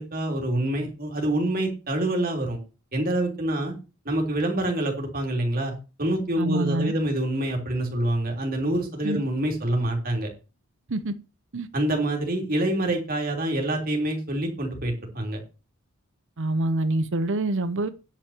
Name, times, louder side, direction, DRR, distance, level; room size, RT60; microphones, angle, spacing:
voice 1, 0.0-2.6 2.9-3.7 4.0-5.7 6.0-10.3 11.7-15.4, right 1 dB, 40° right, 3.4 m, -26 dB
voice 2, 6.4-6.9 9.0-9.2 10.9-11.1 11.5-11.7 16.4-17.9, right 2 dB, 60° right, 0.8 m, -26 dB
10.0 x 5.9 x 7.2 m
head